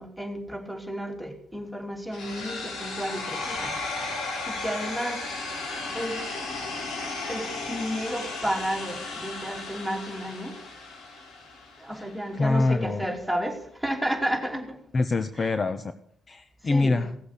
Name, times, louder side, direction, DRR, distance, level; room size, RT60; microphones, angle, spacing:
voice 1, 0.0-3.8 4.5-5.3 5.9-6.3 7.3-10.6 11.8-14.8 15.4-15.5 16.6-17.0, equal, ahead, 3 dB, 2.9 m, -32 dB
sound 1, 2.1-12.1, left 3 dB, 80° left, 4.3 m, -35 dB
voice 2, 12.3-13.0 14.9-15.9 16.3-17.1, left 3 dB, 35° left, 11 dB, 0.7 m, -25 dB
17.0 x 7.8 x 6.7 m, 0.68 s
cardioid pair, 90°, 0 cm